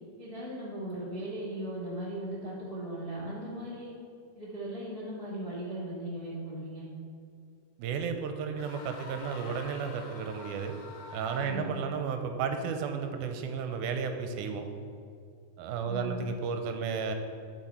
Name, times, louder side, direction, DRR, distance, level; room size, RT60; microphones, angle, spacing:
voice 1, 0.2-3.9 4.3-6.9 11.4-11.7 15.9-16.3, right 1 dB, 25° left, -7 dB, 0.7 m, -38 dB
voice 2, 7.8-10.7 11.1-14.6 15.6-17.1, right 6 dB, 85° right, 6 dB, 2.1 m, -33 dB
sound 1, 8.6-11.9, left 3 dB, 65° left, 1.7 m, -47 dB
11.5 x 4.8 x 4.2 m, 2.4 s
omnidirectional pair, 3.7 m